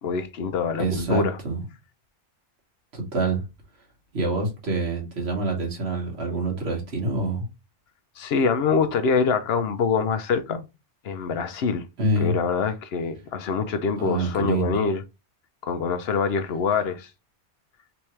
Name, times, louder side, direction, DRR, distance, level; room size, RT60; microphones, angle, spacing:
voice 1, 0.0-1.4 8.2-10.7 11.0-11.9 12.2-15.0 15.6-17.1, left 5 dB, 70° left, 0.8 m, -25 dB
voice 2, 0.8-1.6 2.9-3.4 4.1-7.5 12.0-12.3 14.0-14.8, right 2 dB, 65° right, 1.6 m, -26 dB
3.5 x 3.0 x 3.1 m
omnidirectional pair, 1.2 m